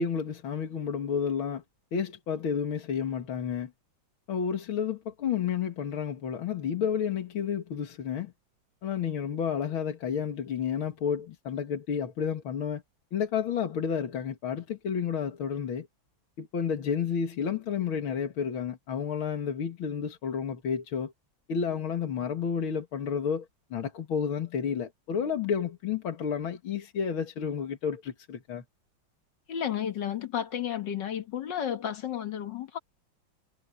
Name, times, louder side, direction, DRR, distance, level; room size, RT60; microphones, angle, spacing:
voice 1, 0.0-1.6 1.9-3.7 4.3-8.3 8.8-12.8 13.1-15.9 16.4-21.1 21.5-23.5 23.7-28.6, left 7 dB, 80° left, 2.6 m, -31 dB
voice 2, 29.5-32.8, left 9 dB, 60° left, 2.1 m, -32 dB
omnidirectional pair, 2.2 m